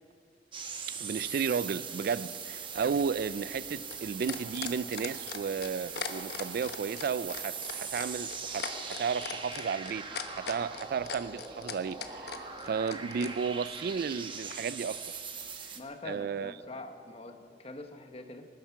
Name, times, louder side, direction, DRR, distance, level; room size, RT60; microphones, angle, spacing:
sound 1, 0.5-15.8, right 5 dB, 30° right, 1.1 m, -41 dB
voice 1, 0.9-15.1 15.6-15.7 16.0-16.5, right 6 dB, 55° right, 0.3 m, -33 dB
sound 2, 2.8-13.3 14.5-14.6, left 6 dB, 65° left, 1.1 m, -39 dB
voice 2, 15.7-18.5, left 2 dB, 35° left, 1.1 m, -44 dB
20.0 x 11.5 x 5.9 m
head